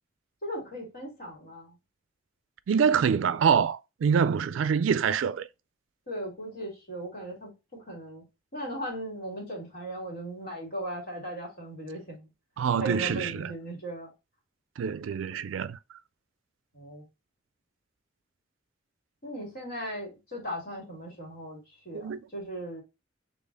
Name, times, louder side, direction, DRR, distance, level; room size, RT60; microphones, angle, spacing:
voice 1, 0.4-1.8 6.1-8.2 8.5-12.3 12.8-14.1 16.7-17.0 19.2-21.6 21.8-22.8, right 1 dB, 55° left, 2.5 m, -38 dB
voice 2, 2.7-5.5 12.6-13.5 14.8-15.8 21.9-22.2, right 7 dB, 90° right, 0.3 m, -25 dB
4.0 x 3.3 x 3.9 m
head